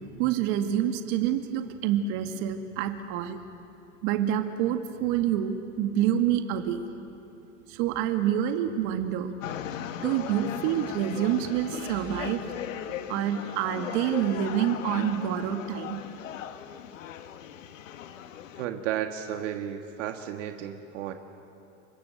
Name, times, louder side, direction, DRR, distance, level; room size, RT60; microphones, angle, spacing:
voice 1, 0.1-3.4 4.0-6.8 7.7-9.3 10.0-12.4 13.1-16.0, right 10 dB, 55° right, 6 dB, 2.1 m, -27 dB
sound 1, 9.4-18.7, left 10 dB, 90° left, 1.7 m, -38 dB
voice 2, 18.5-21.1, right 10 dB, 75° right, 5 dB, 2.0 m, -33 dB
29.5 x 25.0 x 7.9 m, 2.8 s
supercardioid pair, 130°, 37 cm